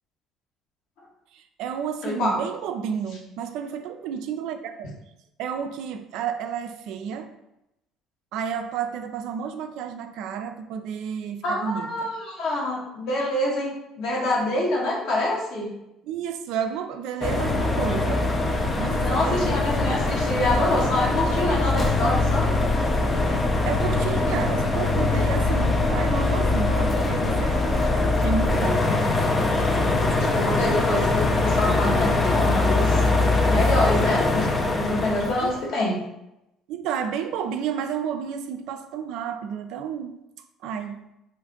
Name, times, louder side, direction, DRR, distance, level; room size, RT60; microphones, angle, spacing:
voice 1, 1.3-4.9 5.4-7.3 8.3-12.1 16.0-18.3 18.8-19.6 23.7-27.7 28.2-28.9 35.4-35.5 36.7-40.2 40.6-41.1, right 7 dB, 70° right, 7 dB, 0.3 m, -31 dB
voice 2, 2.0-2.4 11.4-15.7 19.0-22.5 30.1-33.0 33.5-34.5 34.7-36.0, left 1 dB, 65° left, -4 dB, 1.1 m, -26 dB
sound 1, 17.2-35.6, left 2 dB, 35° left, 0.4 m, -22 dB
2.6 x 2.4 x 3.6 m, 0.88 s
hypercardioid pair, 70°, 0 cm